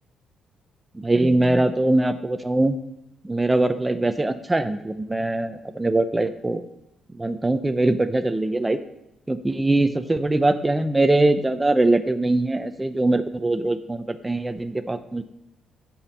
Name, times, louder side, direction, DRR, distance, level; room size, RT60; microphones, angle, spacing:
voice 1, 0.9-2.8 3.2-6.6 7.1-8.8 9.3-15.2, right 2 dB, 15° right, 10 dB, 0.5 m, -22 dB
7.0 x 5.3 x 7.2 m, 0.82 s
cardioid pair, 90°, 0 cm